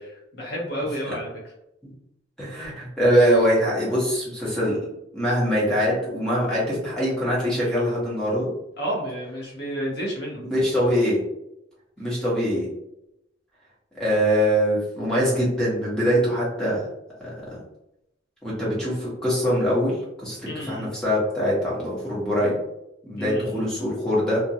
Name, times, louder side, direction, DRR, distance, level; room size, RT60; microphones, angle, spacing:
voice 1, 0.3-1.3 8.8-10.4 20.4-20.9 23.2-23.6, equal, 55° left, -3 dB, 0.8 m, -30 dB
voice 2, 2.4-4.8 5.1-8.5 10.5-11.2 12.0-12.6 13.9-16.8 17.2-17.6 18.4-20.0 20.2-22.5 23.1-24.4, equal, 5° left, -7 dB, 0.9 m, -23 dB
2.4 x 2.1 x 2.7 m, 0.85 s
head